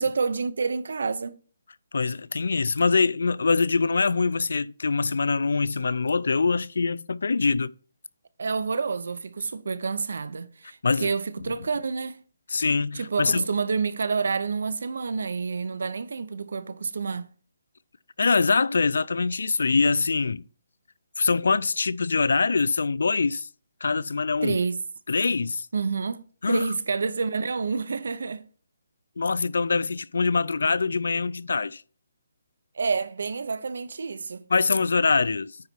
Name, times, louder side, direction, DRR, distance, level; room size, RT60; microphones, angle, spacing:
voice 1, 0.0-1.3 8.4-12.2 12.9-17.3 24.4-24.8 25.7-28.5 32.7-34.4, right 4 dB, 65° right, 0.7 m, -28 dB
voice 2, 1.9-7.7 10.8-11.1 12.5-13.4 18.2-20.4 21.2-23.5 23.8-24.6 25.1-25.7 26.4-26.7 29.2-31.8 34.5-35.6, left 4 dB, 70° left, 0.4 m, -24 dB
9.5 x 4.0 x 4.5 m
hypercardioid pair, 175°, 0 cm